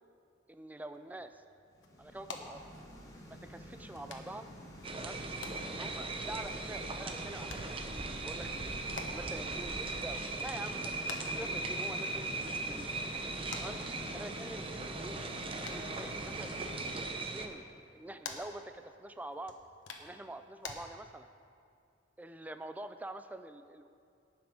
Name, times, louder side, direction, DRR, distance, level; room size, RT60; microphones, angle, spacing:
voice 1, 0.5-1.4 2.0-2.6 3.3-4.5 4.9-5.2 5.6-8.7 9.0-12.9 13.5-13.8 14.1-15.2 15.6-16.8 17.3-17.6 17.9-19.6 20.0-21.3 22.2-23.9, right 1 dB, 10° right, 9 dB, 0.4 m, -46 dB
sound 1, 0.9-20.8, left 4 dB, 85° left, 1.1 m, -52 dB
sound 2, 1.7-17.0, equal, 20° left, 1.6 m, -48 dB
sound 3, 4.8-17.5, right 3 dB, 30° right, 0.8 m, -39 dB
18.0 x 6.1 x 5.0 m, 2.4 s
head